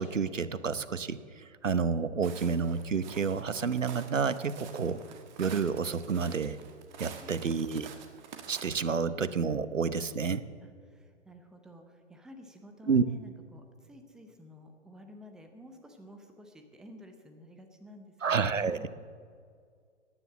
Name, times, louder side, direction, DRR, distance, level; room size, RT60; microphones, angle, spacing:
voice 1, 0.0-5.0 5.4-6.6 7.0-7.9 8.5-10.5 12.9-13.0 18.2-18.8, right 5 dB, 80° right, 15 dB, 0.9 m, -29 dB
Walk footsteps, 2.2-8.7, right 7 dB, 35° right, 1.6 m, -48 dB
voice 2, 7.0-7.6 10.6-18.9, equal, ahead, 5 dB, 0.7 m, -52 dB
18.0 x 9.8 x 7.3 m, 2.1 s
figure-of-eight pair, 125°, 37 cm